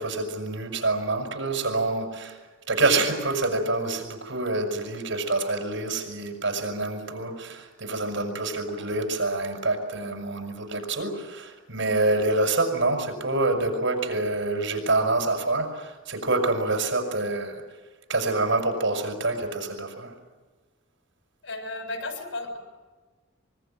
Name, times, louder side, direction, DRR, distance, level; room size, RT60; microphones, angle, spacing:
voice 1, 0.0-2.4 2.7-17.6 18.1-20.1, right 2 dB, 75° right, 4 dB, 6.5 m, -26 dB
voice 2, 21.4-22.6, left 2 dB, 90° left, 5 dB, 7.2 m, -34 dB
24.5 x 23.5 x 9.2 m, 1.3 s
head